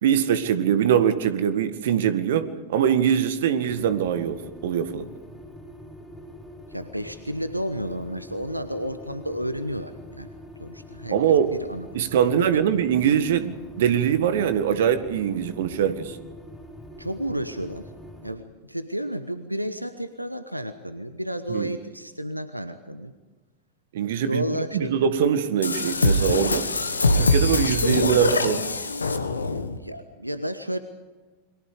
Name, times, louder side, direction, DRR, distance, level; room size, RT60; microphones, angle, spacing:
voice 1, 0.0-5.1 11.1-11.5 11.9-16.2 21.5-21.7 23.9-24.4 24.7-26.7 27.1-28.7, right 9 dB, 55° right, 11 dB, 1.8 m, -22 dB
sound 1, 3.7-18.4, left 1 dB, ahead, 5.0 m, -44 dB
voice 2, 6.7-10.3 10.6-11.9 12.2-12.6 17.0-17.9 18.2-23.1 24.2-24.9 29.8-30.8, equal, 90° right, 11 dB, 1.2 m, -32 dB
sound 2, 25.6-29.8, left 2 dB, 75° left, 1.6 m, -23 dB
29.5 x 23.0 x 5.2 m, 1.2 s
figure-of-eight pair, 90°, 0 cm